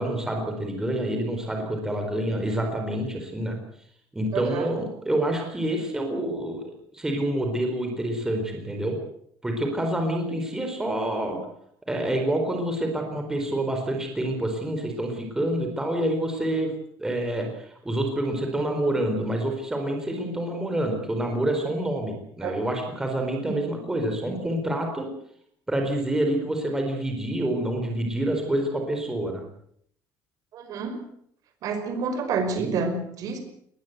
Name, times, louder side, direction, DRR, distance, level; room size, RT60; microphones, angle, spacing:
voice 1, 0.0-3.6 4.1-9.0 9.4-11.4 11.9-16.7 17.0-25.1 25.7-29.4, right 1 dB, 5° right, 3 dB, 4.3 m, -27 dB
voice 2, 4.3-4.7 22.4-22.6 23.4-23.6 30.5-31.0 31.6-33.4, right 4 dB, 50° right, 8 dB, 5.2 m, -28 dB
21.0 x 20.5 x 8.1 m, 0.68 s
cardioid pair, 165°, 8 cm